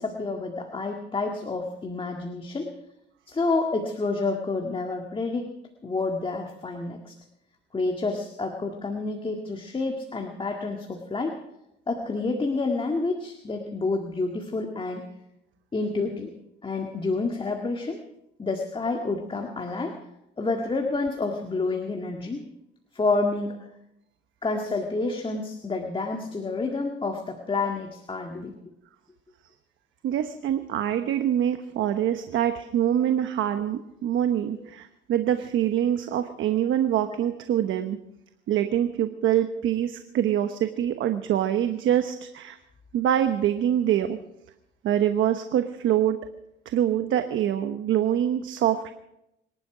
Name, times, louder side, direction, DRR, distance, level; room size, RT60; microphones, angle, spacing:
voice 1, 0.0-2.7 3.3-5.5 5.8-7.1 7.7-11.3 11.9-15.0 15.7-16.3 16.6-18.0 18.4-19.9 20.4-22.4 22.9-23.7 24.4-28.5, left 3 dB, 25° left, 3 dB, 1.9 m, -29 dB
voice 2, 30.0-38.0 38.5-42.6 42.9-44.2 44.8-46.2 46.6-48.9, right 10 dB, 80° right, 8 dB, 1.0 m, -25 dB
25.5 x 11.5 x 5.0 m, 0.86 s
cardioid pair, 90°, 20 cm